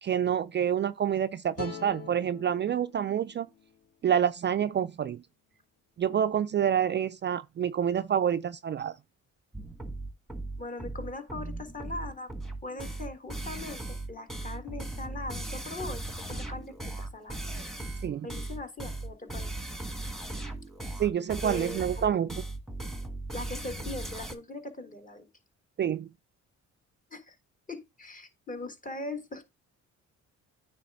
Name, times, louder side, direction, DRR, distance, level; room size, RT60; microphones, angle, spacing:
voice 1, 0.0-3.5 4.0-5.2 6.0-8.9 18.0-18.3 21.0-22.3 25.8-26.1, right 9 dB, 35° right, 0.4 m, -27 dB
sound 1, 1.5-4.7, left 8 dB, 50° left, 2.1 m, -45 dB
sound 2, 9.5-24.3, right 2 dB, ahead, 1.4 m, -38 dB
voice 2, 10.6-12.3 12.6-17.5 18.2-19.5 21.4-22.1 23.3-25.3 27.1-27.4 27.7-29.4, left 2 dB, 25° left, 1.5 m, -40 dB
9.2 x 3.3 x 4.6 m
cardioid pair, 90°, 30 cm